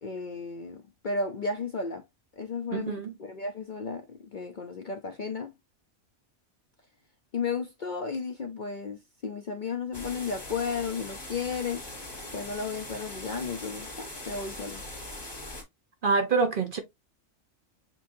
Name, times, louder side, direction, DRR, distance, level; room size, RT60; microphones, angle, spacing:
voice 1, 0.0-2.0 2.4-5.5 7.3-11.8 12.3-14.8, left 4 dB, 50° left, 0.6 m, -34 dB
voice 2, 2.7-3.1 16.0-16.8, right 4 dB, 45° right, 0.9 m, -26 dB
sound 1, 9.9-15.6, left 1 dB, 20° left, 1.4 m, -41 dB
7.1 x 2.7 x 2.6 m
omnidirectional pair, 1.4 m